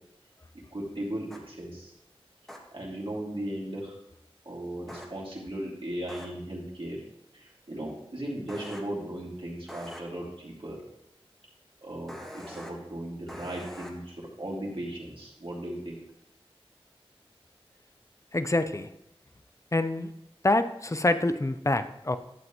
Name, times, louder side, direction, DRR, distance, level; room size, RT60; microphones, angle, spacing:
voice 1, 0.7-1.9 2.7-4.0 4.4-7.0 7.3-10.8 11.8-16.0, right 1 dB, 60° right, -4 dB, 2.7 m, -37 dB
sound 1, 1.3-1.4 2.5-2.6 4.9-5.1 6.1-6.3 8.5-8.8 9.7-10.0 12.1-12.7 13.3-13.9, equal, 5° left, 1.5 m, -43 dB
voice 2, 18.3-18.9 19.7-20.1 20.4-22.2, left 2 dB, 30° left, 11 dB, 0.6 m, -26 dB
11.0 x 7.6 x 3.0 m, 0.83 s
wide cardioid pair, 40°, 10 cm